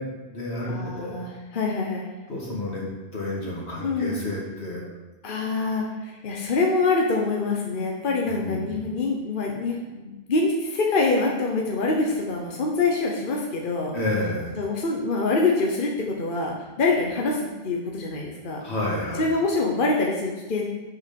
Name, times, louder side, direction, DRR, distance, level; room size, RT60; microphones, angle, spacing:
voice 1, 0.0-1.2 2.3-2.8 3.1-4.8 8.3-8.9 13.9-14.6 18.6-19.3, left 1 dB, 85° left, -4 dB, 2.4 m, -30 dB
voice 2, 0.7-2.1 3.8-4.2 5.2-13.9 14.6-18.6 19.2-20.6, left 3 dB, 55° left, 0 dB, 1.2 m, -25 dB
7.2 x 6.4 x 5.3 m, 1.1 s
omnidirectional pair, 1.1 m